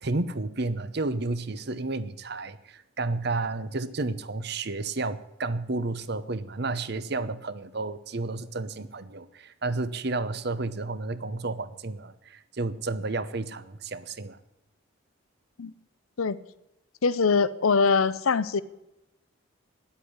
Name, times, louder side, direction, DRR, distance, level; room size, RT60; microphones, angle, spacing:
voice 1, 0.0-14.4, right 3 dB, 50° right, 14 dB, 0.8 m, -31 dB
voice 2, 17.0-18.6, left 5 dB, 80° left, 17 dB, 0.6 m, -23 dB
10.5 x 8.3 x 9.6 m, 0.89 s
head